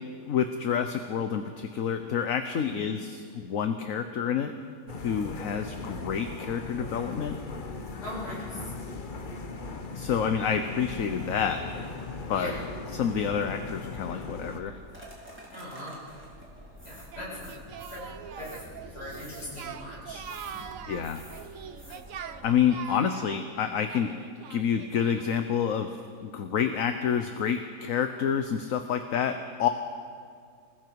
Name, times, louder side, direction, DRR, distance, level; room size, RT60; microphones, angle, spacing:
voice 1, 0.2-4.5 5.0-7.4 9.9-11.6 12.3-12.6 12.9-14.8 20.9-21.2 22.4-24.1 24.5-25.9 26.2-29.7, left 8 dB, 60° left, 7 dB, 1.2 m, -28 dB
sound 1, 4.9-14.6, left 3 dB, 35° left, 1.0 m, -38 dB
voice 2, 8.0-8.6 12.3-12.6 15.5-16.0 16.8-17.5 17.9-18.0 18.4-20.2, left 1 dB, 75° left, -8 dB, 7.9 m, -40 dB
sound 2, 14.4-22.5, right 1 dB, 5° right, 4.0 m, -48 dB
Singing, 17.1-25.5, right 8 dB, 60° right, 1.1 m, -43 dB
28.5 x 20.0 x 4.7 m, 2.3 s
omnidirectional pair, 1.8 m